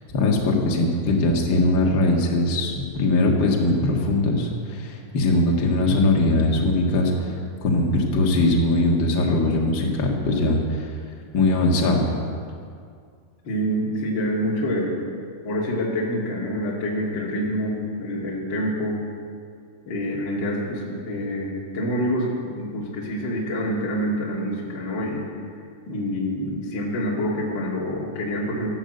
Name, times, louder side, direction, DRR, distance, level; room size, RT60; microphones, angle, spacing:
voice 1, 0.1-7.3 7.6-10.9 11.3-12.1, left 2 dB, 90° left, -1 dB, 1.0 m, -21 dB
voice 2, 13.4-14.9 15.4-19.1 19.9-25.3 25.9-28.7, equal, 30° left, -4 dB, 2.6 m, -26 dB
14.0 x 12.0 x 8.0 m, 2.2 s
omnidirectional pair, 5.3 m